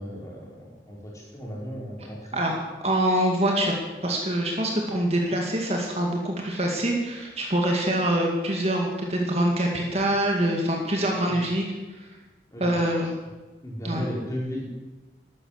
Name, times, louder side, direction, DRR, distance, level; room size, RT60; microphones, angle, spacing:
voice 1, 0.0-2.4 11.1-11.5 12.5-13.1 13.6-14.7, equal, 20° left, -3 dB, 4.8 m, -36 dB
voice 2, 2.8-3.7 4.0-11.7 12.6-13.1 13.8-14.0, right 1 dB, 35° right, 0 dB, 2.2 m, -25 dB
13.0 x 12.0 x 8.0 m, 1.2 s
head